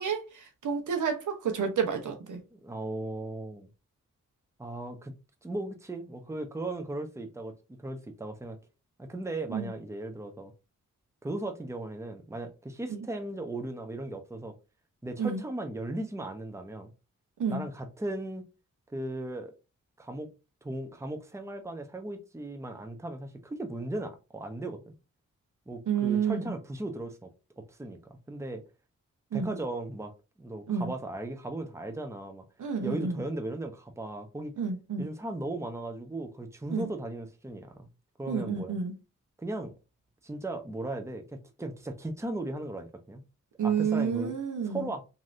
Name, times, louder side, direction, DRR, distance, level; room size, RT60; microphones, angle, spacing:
voice 1, 0.0-2.4 9.5-9.7 12.9-13.1 15.2-15.4 17.4-17.7 25.9-26.5 29.3-29.5 30.7-30.9 32.6-33.2 34.6-35.1 36.7-36.9 38.3-38.9 43.6-44.9, right 6 dB, 75° right, 0.8 m, -30 dB
voice 2, 2.5-3.7 4.6-5.1 5.4-8.6 9.0-10.5 11.2-14.5 15.0-16.9 17.5-18.4 18.9-19.5 20.0-20.3 20.6-24.9 25.7-28.0 28.3-28.6 29.3-30.1 30.4-32.4 32.8-34.5 35.0-37.9 38.2-38.8 39.4-39.7 40.2-43.2 43.6-44.3 44.6-45.0, right 2 dB, 10° right, 0.7 m, -37 dB
3.0 x 2.8 x 2.5 m
cardioid pair, 50°, 31 cm